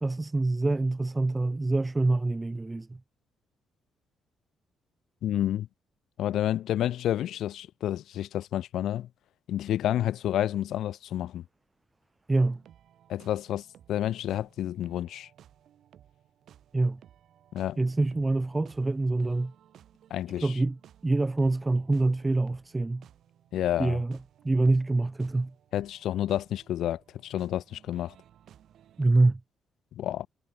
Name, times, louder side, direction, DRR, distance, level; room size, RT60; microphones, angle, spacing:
voice 1, 0.0-3.0 12.3-12.6 16.7-17.0 17.8-19.5 20.4-23.0 23.8-24.2 24.4-25.5 29.0-29.4, right 2 dB, 20° right, 0.5 m, -26 dB
voice 2, 5.2-5.7 6.2-9.1 9.5-11.4 13.1-15.3 17.5-17.8 20.1-20.5 23.5-24.0 25.7-28.1 30.0-30.3, left 12 dB, 75° left, 0.4 m, -30 dB
sound 1, 12.4-29.1, right 10 dB, 70° right, 1.8 m, -58 dB
cardioid pair, 90°, 0 cm